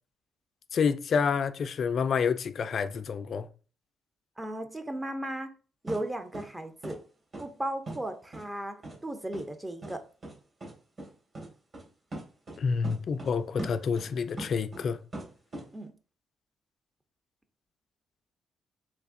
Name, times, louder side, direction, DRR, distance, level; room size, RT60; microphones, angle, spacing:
voice 1, 0.7-3.5 12.6-15.0, left 6 dB, 60° left, 0.3 m, -28 dB
voice 2, 4.4-5.5 5.8-7.0 7.4-8.8 9.0-10.0 15.7-15.9, right 1 dB, 15° right, 0.5 m, -35 dB
sound 1, 5.9-6.0 6.3-6.4 6.8-7.0 7.3-7.4 7.9-8.0 8.3-8.4 8.8-9.0 9.3-9.4 9.8-9.9 10.2-10.3 10.6-10.7 11.0-11.1 11.3-11.5 11.7-11.8 12.1-12.6 12.8-13.3 13.6-14.8 15.1-15.7, right 1 dB, 45° right, 1.8 m, -39 dB
3.4 x 3.2 x 2.5 m
cardioid pair, 75°, 0 cm